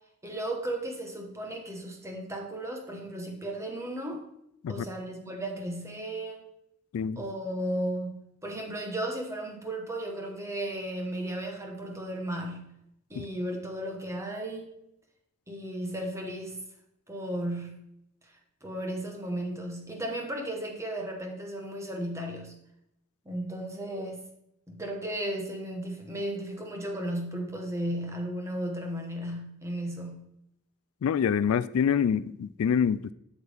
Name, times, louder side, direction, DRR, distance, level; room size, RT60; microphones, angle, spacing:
voice 1, 0.2-4.2 4.7-6.4 7.2-12.7 13.1-14.7 15.5-16.6 17.1-17.9 18.6-22.5 23.2-24.2 24.7-30.3, right 1 dB, 15° right, 1.3 m, -35 dB
voice 2, 31.0-33.1, left 7 dB, 75° left, 0.3 m, -26 dB
7.9 x 7.3 x 3.5 m
head